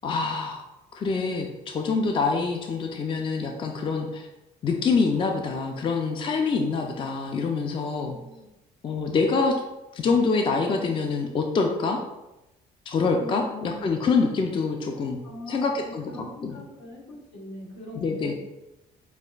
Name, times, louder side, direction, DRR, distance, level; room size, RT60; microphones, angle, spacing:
voice 1, 0.0-0.6 0.9-4.3 4.6-8.2 8.8-9.5 9.9-12.0 12.9-15.2 15.5-16.1 16.4-16.6 17.9-18.3, left 4 dB, 30° left, 3 dB, 0.4 m, -25 dB
voice 2, 7.9-8.5 13.2-14.0 15.2-18.3, left 1 dB, 80° left, -2 dB, 1.2 m, -41 dB
6.3 x 2.5 x 2.3 m, 0.97 s
cardioid pair, 110°, 17 cm